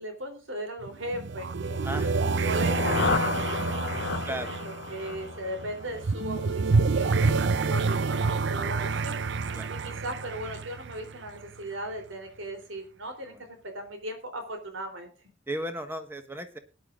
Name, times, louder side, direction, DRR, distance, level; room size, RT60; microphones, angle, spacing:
voice 1, 0.0-9.2 9.7-15.1, right 1 dB, 90° right, 5 dB, 3.5 m, -38 dB
sound 1, 0.8-11.6, right 4 dB, 65° right, 0.6 m, -28 dB
voice 2, 1.8-2.1 4.2-4.5 9.5-9.7 13.3-13.4 15.5-16.6, right 1 dB, 10° right, 7 dB, 1.4 m, -35 dB
sound 2, 2.3-6.3, left 5 dB, 70° left, 0.6 m, -32 dB
20.0 x 10.5 x 2.5 m, 0.31 s
head